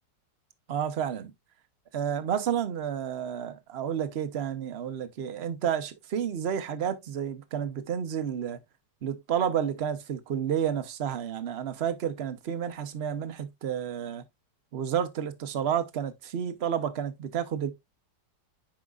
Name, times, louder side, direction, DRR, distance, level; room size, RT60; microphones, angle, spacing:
voice 1, 0.7-1.3 1.9-8.6 9.0-14.2 14.7-17.7, right 9 dB, 45° right, 0.9 m, -30 dB
10.5 x 4.9 x 2.3 m
omnidirectional pair, 1.9 m